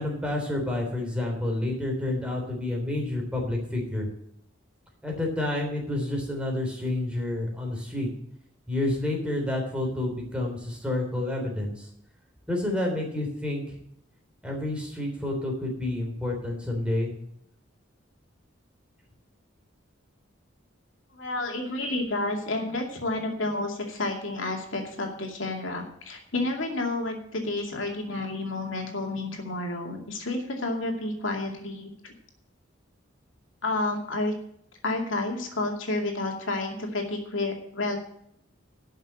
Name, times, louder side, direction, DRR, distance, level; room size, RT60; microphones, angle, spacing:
voice 1, 0.0-4.1 5.0-8.1 8.7-11.9 12.5-13.8 14.4-17.1, left 1 dB, 5° right, 0 dB, 3.4 m, -29 dB
voice 2, 21.1-32.1 33.6-34.3 34.8-38.0, left 2 dB, 75° left, 2 dB, 2.5 m, -30 dB
12.0 x 6.4 x 7.6 m, 0.71 s
head